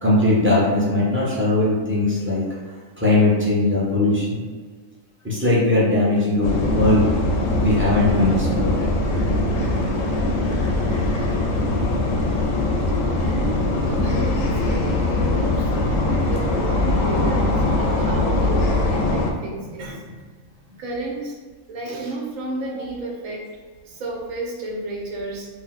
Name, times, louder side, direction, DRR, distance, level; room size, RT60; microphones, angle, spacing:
voice 1, 0.0-2.4 3.0-4.4 5.2-7.1 7.6-8.8 18.1-18.2 19.6-20.1, left 2 dB, 15° right, -8 dB, 0.5 m, -20 dB
sound 1, 6.4-19.3, left 2 dB, 75° left, 0.9 m, -21 dB
voice 2, 13.2-16.0 16.3-20.0 20.8-21.3 21.7-23.5 23.9-25.5, right 2 dB, 80° right, -2 dB, 1.0 m, -32 dB
2.9 x 2.1 x 4.0 m, 1.5 s
omnidirectional pair, 1.4 m